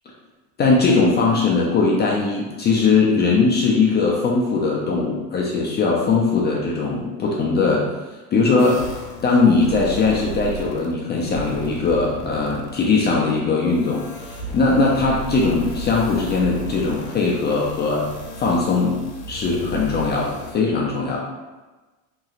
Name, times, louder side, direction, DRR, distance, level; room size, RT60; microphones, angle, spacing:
voice 1, 0.6-7.9 8.3-8.9 9.2-18.1 18.4-19.0 19.3-21.2, left 4 dB, 25° left, -3 dB, 0.4 m, -20 dB
sound 1, 8.6-10.9 11.2-20.5, equal, 80° left, 0.8 m, -34 dB
3.0 x 2.7 x 2.4 m, 1.2 s
supercardioid pair, 110°, 41 cm